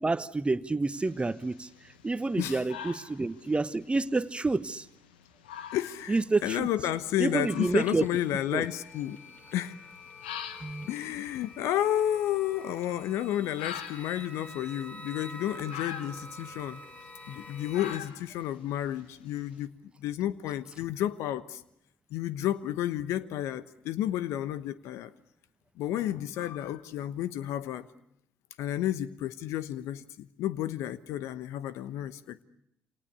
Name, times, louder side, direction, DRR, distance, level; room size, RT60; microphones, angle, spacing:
voice 1, 0.0-1.7 2.0-4.8 6.1-6.7 7.2-8.1 8.5-8.6 10.6-10.9, right 3 dB, 20° right, 14 dB, 1.2 m, -28 dB
sound 1, 0.9-19.6, left 9 dB, 80° left, 1.3 m, -47 dB
voice 2, 2.4-2.7 5.7-9.2 9.5-9.8 10.8-16.8 17.3-19.7 20.0-21.6 22.1-25.1 25.8-27.9 28.6-32.4, left 12 dB, 65° left, 16 dB, 1.1 m, -31 dB
sound 2, 7.3-18.0, left 1 dB, 30° left, 5.4 m, -48 dB
28.5 x 26.5 x 6.9 m, 0.77 s
figure-of-eight pair, 45°, 5 cm